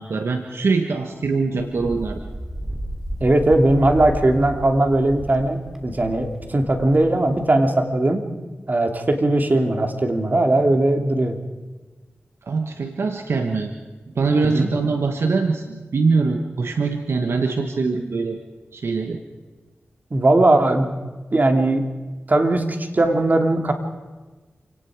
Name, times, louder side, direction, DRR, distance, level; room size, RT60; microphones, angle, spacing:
voice 1, 0.0-2.2 12.5-13.7 14.1-18.4 18.7-19.2, right 4 dB, 75° right, 5 dB, 1.5 m, -23 dB
Wind, 1.6-7.5, right 1 dB, 10° right, 3.2 m, -33 dB
voice 2, 3.2-8.2 8.7-11.4 14.4-14.7 20.1-20.9 21.3-21.8 22.3-22.7 22.9-23.7, right 2 dB, 45° right, 4 dB, 2.9 m, -19 dB
28.0 x 18.5 x 5.1 m, 1.2 s
cardioid pair, 45°, 4 cm